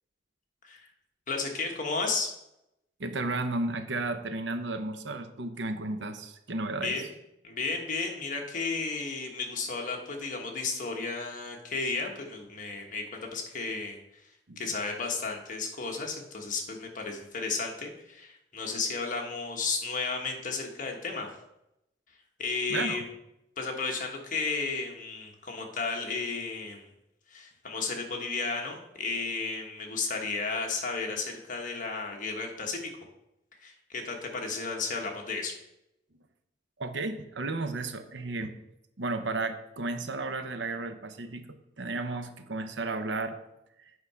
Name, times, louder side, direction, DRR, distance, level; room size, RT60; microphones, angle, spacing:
voice 1, 1.3-2.3 6.8-7.1 7.4-14.0 14.6-21.3 22.4-23.0 23.6-26.9 27.3-32.9 33.6-35.5, left 4 dB, 45° left, 2 dB, 1.3 m, -33 dB
voice 2, 3.0-7.0 14.5-14.6 22.7-23.0 36.8-38.5 39.0-43.4, right 2 dB, 85° right, 8 dB, 0.8 m, -33 dB
8.7 x 4.8 x 5.5 m, 0.86 s
head